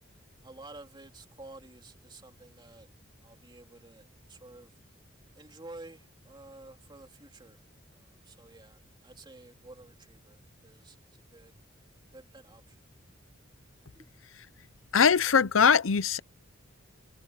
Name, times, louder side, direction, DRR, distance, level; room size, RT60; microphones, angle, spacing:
voice 1, 0.4-2.9 3.2-4.7 5.4-7.6 7.9-11.6 12.1-12.8 13.9-14.1, right 2 dB, 25° right, 3.1 m, -51 dB
voice 2, 14.9-16.2, left 6 dB, 80° left, 0.7 m, -21 dB
head